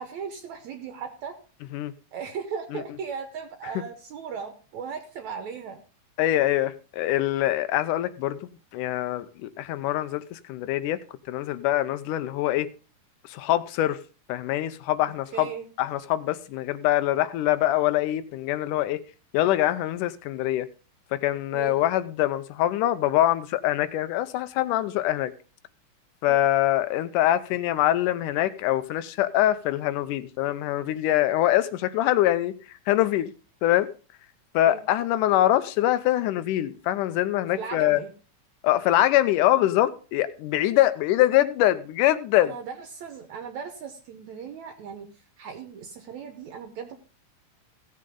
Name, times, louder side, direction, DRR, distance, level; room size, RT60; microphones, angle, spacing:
voice 1, 0.0-1.4 2.1-5.8 15.3-15.7 21.5-21.8 26.2-26.4 34.7-34.8 37.5-38.1 42.4-45.1 45.4-47.0, right 6 dB, 70° right, 2.2 m, -37 dB
voice 2, 6.2-11.0 11.3-12.7 13.2-14.0 14.3-15.5 15.8-19.0 19.3-20.7 21.1-25.3 26.2-33.3 33.6-33.9 34.5-38.0 38.6-42.5, left 14 dB, 85° left, 2.2 m, -24 dB
16.0 x 7.6 x 3.7 m
omnidirectional pair, 3.6 m